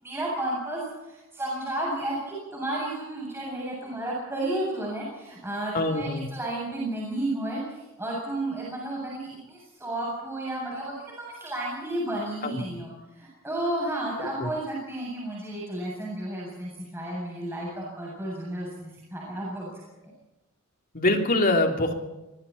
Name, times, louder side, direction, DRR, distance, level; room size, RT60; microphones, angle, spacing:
voice 1, 0.0-19.8, right 1 dB, 10° right, -5 dB, 7.6 m, -32 dB
voice 2, 5.7-6.3 12.4-12.7 14.2-14.5 20.9-21.9, left 2 dB, 40° left, 3 dB, 3.2 m, -24 dB
25.5 x 24.0 x 4.3 m, 1.0 s
head